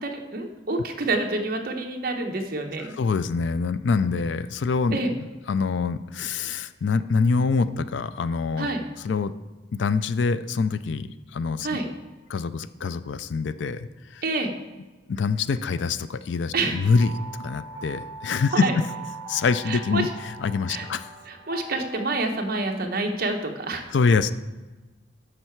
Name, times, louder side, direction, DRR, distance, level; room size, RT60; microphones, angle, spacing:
voice 1, 0.0-2.9 4.9-5.1 8.6-8.8 11.6-11.8 14.2-14.5 16.5-16.8 18.5-18.8 19.7-20.1 20.7-20.8 21.3-23.9, right 2 dB, 50° right, 3 dB, 1.0 m, -27 dB
voice 2, 2.8-8.7 9.0-9.3 9.7-11.7 12.3-14.2 15.1-17.1 17.4-18.7 19.3-21.1 23.9-24.3, left 4 dB, 65° left, 13 dB, 0.4 m, -25 dB
sound 1, 16.7-22.3, right 2 dB, 20° right, 1.1 m, -41 dB
9.9 x 6.6 x 4.6 m, 1.2 s
head